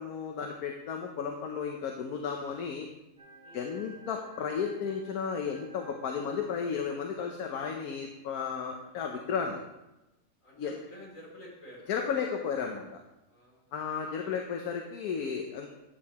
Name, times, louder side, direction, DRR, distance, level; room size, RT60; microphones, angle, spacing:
voice 1, 0.0-2.9 3.5-9.6 10.6-10.7 11.9-12.9 13.7-15.7, left 6 dB, 80° left, 3 dB, 1.3 m, -33 dB
sound 1, 3.2-7.6, equal, 40° right, 3.3 m, -54 dB
voice 2, 10.4-12.1 13.3-14.4, equal, 60° left, -4 dB, 3.4 m, -51 dB
11.5 x 8.5 x 2.9 m, 0.93 s
omnidirectional pair, 1.6 m